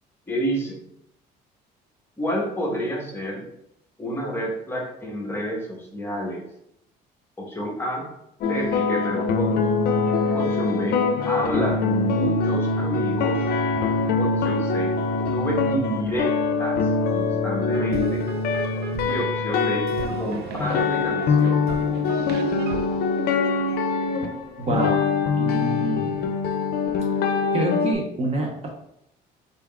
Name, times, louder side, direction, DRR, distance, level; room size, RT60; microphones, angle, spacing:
voice 1, 0.3-0.8 2.2-3.5 4.0-6.4 7.4-8.0 8.5-9.7 10.3-13.5 14.2-14.9 15.3-18.3 19.0-19.9 20.2-21.6, equal, 15° left, -2 dB, 1.1 m, -29 dB
sound 1, 8.4-27.9, left 4 dB, 65° left, 0.5 m, -23 dB
sound 2, 17.7-24.1, right 6 dB, 75° right, 0.4 m, -36 dB
voice 2, 24.6-25.0 25.3-26.2 27.1-27.2 27.5-28.7, right 2 dB, 40° right, 1 dB, 0.7 m, -27 dB
4.0 x 3.5 x 2.3 m, 0.77 s
cardioid pair, 110°, 17 cm